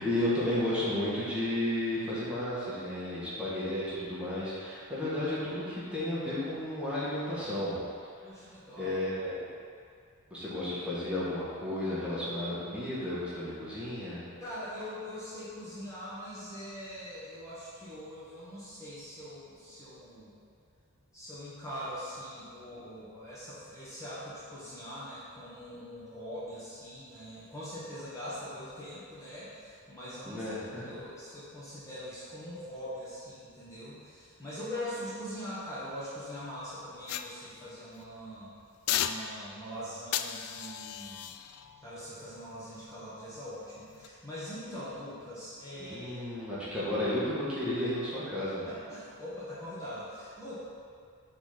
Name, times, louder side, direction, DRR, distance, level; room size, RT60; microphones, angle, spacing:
voice 1, 0.0-7.8 8.8-9.4 10.3-14.3 30.2-30.9 45.8-48.6, left 1 dB, 5° right, -10 dB, 1.5 m, -33 dB
voice 2, 8.2-9.0 14.4-20.3 21.1-30.5 30.8-38.5 38.9-41.3 41.8-46.2 48.7-50.6, equal, 15° left, -11 dB, 1.3 m, -42 dB
sound 1, 37.1-38.1 38.9-39.7 40.1-43.3 43.9-44.1, left 10 dB, 80° left, 0.3 m, -37 dB
5.9 x 3.6 x 5.8 m, 2.3 s
head